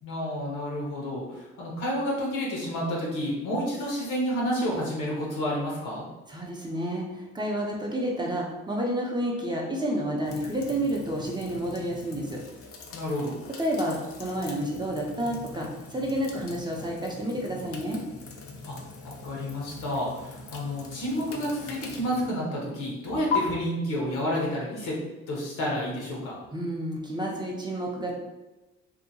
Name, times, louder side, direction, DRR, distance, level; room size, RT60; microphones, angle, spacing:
voice 1, 0.0-6.1 12.9-13.3 18.6-18.8 19.0-25.0 25.3-26.4, equal, 90° left, -3 dB, 1.0 m, -30 dB
voice 2, 6.3-12.4 13.6-18.0 26.5-28.2, right 1 dB, 15° right, -2 dB, 0.5 m, -30 dB
sound 1, 10.2-23.4, left 5 dB, 50° left, 0.5 m, -41 dB
2.7 x 2.2 x 2.7 m, 1.1 s
cardioid pair, 90°, 30 cm